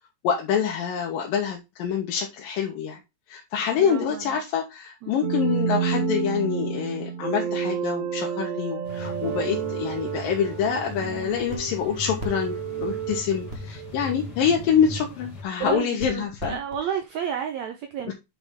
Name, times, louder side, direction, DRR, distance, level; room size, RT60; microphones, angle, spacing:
voice 1, 0.2-3.0 3.3-16.6 18.1-18.2, left 7 dB, 80° left, 0 dB, 2.9 m, -26 dB
voice 2, 3.8-4.4 5.0-5.1 15.6-18.1, right 8 dB, 70° right, 5 dB, 1.8 m, -31 dB
sound 1, 5.2-14.2, right 6 dB, 50° right, 3.2 m, -30 dB
sound 2, 8.8-15.4, left 3 dB, 35° left, 2.3 m, -39 dB
sound 3, 11.2-17.0, right 2 dB, 30° right, 1.2 m, -39 dB
8.7 x 4.4 x 3.6 m, 0.23 s
omnidirectional pair, 3.9 m